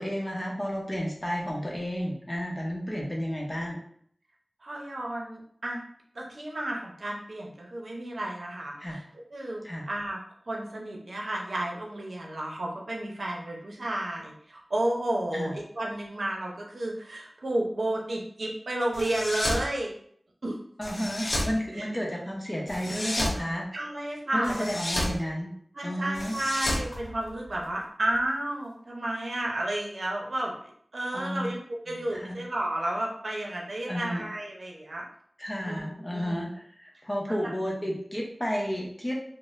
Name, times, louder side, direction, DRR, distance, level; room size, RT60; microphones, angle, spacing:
voice 1, 0.0-3.8 8.8-9.0 9.6-9.9 15.3-15.5 20.8-23.7 24.3-25.5 25.8-26.4 31.1-31.5 31.9-32.4 33.9-34.2 35.4-39.1, equal, 25° left, -1 dB, 0.8 m, -32 dB
voice 2, 4.6-5.8 6.1-9.0 9.3-10.2 10.5-19.9 20.4-20.6 21.7-21.9 23.7-24.7 25.7-35.0 35.6-36.4 37.3-37.5, right 1 dB, 80° right, -1 dB, 0.7 m, -32 dB
sound 1, 18.9-19.7 20.8-21.5 22.7-23.4 24.4-25.2 26.1-27.7, left 1 dB, 85° left, 0.7 m, -31 dB
3.8 x 2.1 x 2.5 m, 0.63 s
wide cardioid pair, 70°, 0 cm